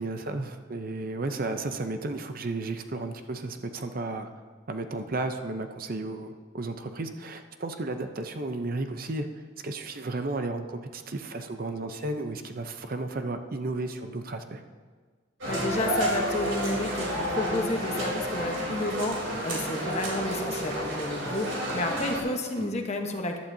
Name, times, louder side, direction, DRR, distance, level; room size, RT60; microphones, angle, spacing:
voice 1, 0.0-4.3 4.7-9.3 9.6-14.6 22.6-22.7, right 2 dB, 45° right, 7 dB, 0.6 m, -33 dB
sound 1, 15.4-22.2, equal, 70° right, 3.3 m, -30 dB
voice 2, 15.5-23.4, left 2 dB, 35° left, 3 dB, 1.1 m, -31 dB
15.0 x 11.5 x 2.7 m, 1.5 s
head